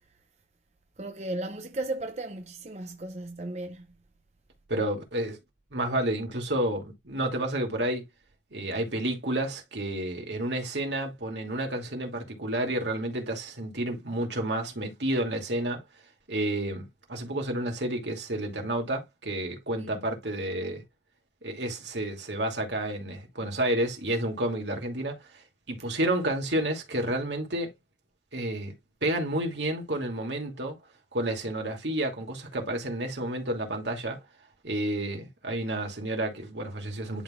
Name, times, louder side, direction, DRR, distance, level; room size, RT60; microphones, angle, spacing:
voice 1, 1.0-4.0 19.8-20.1, right 2 dB, 40° right, 0.7 m, -35 dB
voice 2, 4.7-5.4 5.7-8.0 8.5-15.8 16.3-20.8 21.4-25.1 25.7-27.7 28.3-28.7 29.0-30.8 31.1-34.2 34.6-37.2, right 1 dB, 85° right, 2.7 m, -30 dB
11.5 x 3.8 x 2.5 m
head